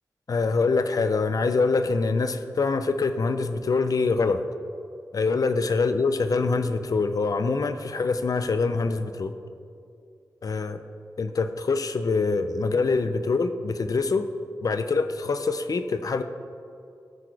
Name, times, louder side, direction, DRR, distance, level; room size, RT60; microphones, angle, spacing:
voice 1, 0.3-4.4 5.1-9.3 10.4-10.8 11.2-14.3 14.6-16.2, left 4 dB, 60° left, 10 dB, 0.5 m, -24 dB
14.5 x 6.0 x 4.7 m, 2.5 s
wide cardioid pair, 105°, 7 cm